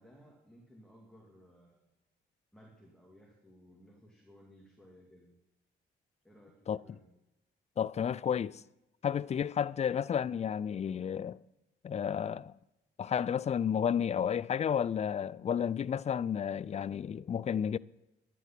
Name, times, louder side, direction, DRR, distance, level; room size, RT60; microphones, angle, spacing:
voice 1, 0.0-1.9 2.5-5.3 6.2-7.1, equal, ahead, 2.6 m, -58 dB
voice 2, 7.8-8.6 9.0-11.4 11.8-12.5 13.0-17.8, left 8 dB, 35° left, 0.4 m, -32 dB
11.0 x 11.0 x 6.0 m
cardioid pair, 90°, 20 cm